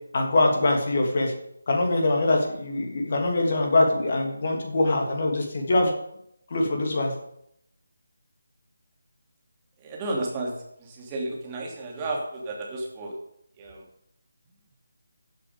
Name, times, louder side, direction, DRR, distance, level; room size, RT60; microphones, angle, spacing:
voice 1, 0.1-1.3 1.7-5.9 6.5-7.1, left 2 dB, 40° left, 1 dB, 2.8 m, -23 dB
voice 2, 9.8-10.5 10.8-13.1 13.6-13.8, right 2 dB, 20° right, -2 dB, 2.8 m, -32 dB
14.5 x 8.1 x 5.2 m, 0.75 s
figure-of-eight pair, 155°, 0 cm